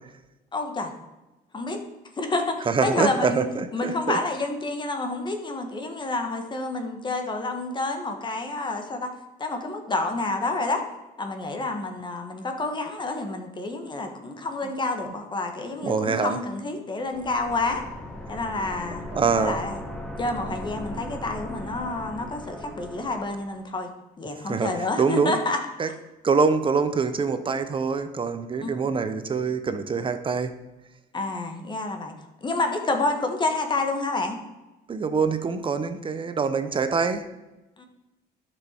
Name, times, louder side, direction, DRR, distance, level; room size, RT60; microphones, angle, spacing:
voice 1, 0.5-0.9 1.5-1.8 2.2-3.4 3.7-9.1 9.4-10.8 11.2-17.8 18.3-19.0 19.4-19.8 20.2-23.9 24.2-25.6 28.6-28.8 31.1-32.1 32.4-34.4 37.8-37.9, left 2 dB, 25° left, 5 dB, 1.4 m, -29 dB
voice 2, 2.7-4.2 15.8-16.4 19.1-19.6 24.5-25.4 25.8-25.9 26.2-30.5 34.9-37.2, right 5 dB, 30° right, 10 dB, 0.8 m, -25 dB
sound 1, 17.1-23.6, left 1 dB, 5° left, 1.2 m, -38 dB
11.0 x 6.3 x 4.4 m, 1.0 s
cardioid pair, 110°, 17 cm